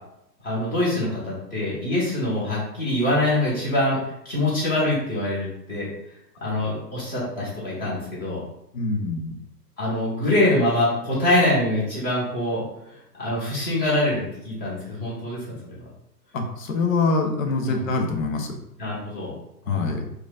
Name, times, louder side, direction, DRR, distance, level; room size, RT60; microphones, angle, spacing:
voice 1, 0.4-4.0 4.2-5.9 6.4-8.4 9.8-12.6 13.1-15.8 17.6-17.8 18.8-19.3 19.7-19.9, left 1 dB, 15° left, -6 dB, 1.3 m, -24 dB
voice 2, 8.7-9.3 16.3-18.5 19.7-20.0, left 3 dB, 55° left, 3 dB, 0.8 m, -24 dB
4.8 x 2.5 x 2.4 m, 0.81 s
figure-of-eight pair, 125°, 49 cm